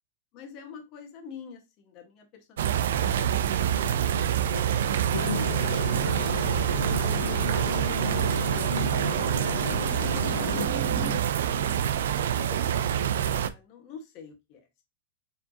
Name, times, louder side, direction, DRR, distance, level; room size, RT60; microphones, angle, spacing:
voice 1, 0.3-4.0 4.5-6.6 6.8-11.7 12.2-14.8, left 6 dB, 40° left, 4 dB, 1.3 m, -48 dB
sound 1, 2.6-13.5, right 9 dB, 75° right, 0.4 m, -26 dB
sound 2, 5.1-10.7, left 8 dB, 90° left, 0.5 m, -35 dB
sound 3, 6.4-11.2, equal, 10° right, 2.2 m, -40 dB
4.7 x 3.7 x 2.7 m, 0.23 s
supercardioid pair, 145°, 0 cm